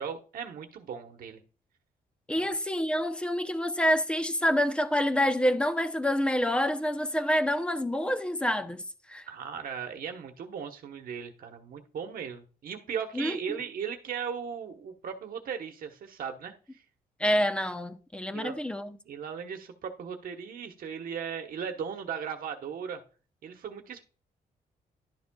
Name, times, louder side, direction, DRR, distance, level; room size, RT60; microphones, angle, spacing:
voice 1, 0.0-1.4 2.4-2.5 9.3-16.8 18.3-18.6 19.1-23.0 23.4-24.0, right 7 dB, 65° right, 1.1 m, -37 dB
voice 2, 2.3-8.8 9.1-9.2 13.1-13.4 17.2-19.0, equal, 5° left, 0.7 m, -27 dB
11.5 x 7.2 x 2.3 m
cardioid pair, 125°, 16 cm